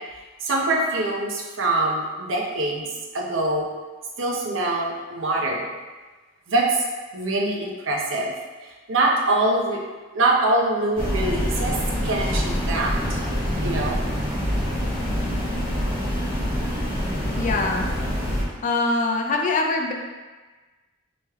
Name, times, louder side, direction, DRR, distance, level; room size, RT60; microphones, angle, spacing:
voice 1, 0.4-3.7 4.2-5.7 6.5-6.8 7.1-8.3 8.9-9.8 10.1-11.8 12.0-13.2 13.6-14.0, right 2 dB, 70° right, -1 dB, 0.6 m, -24 dB
sound 1, 11.0-18.4, equal, 30° right, 0.9 m, -25 dB
voice 2, 17.4-17.9 18.6-19.9, left 3 dB, 40° left, 1 dB, 0.4 m, -23 dB
3.2 x 3.0 x 3.5 m, 1.3 s
head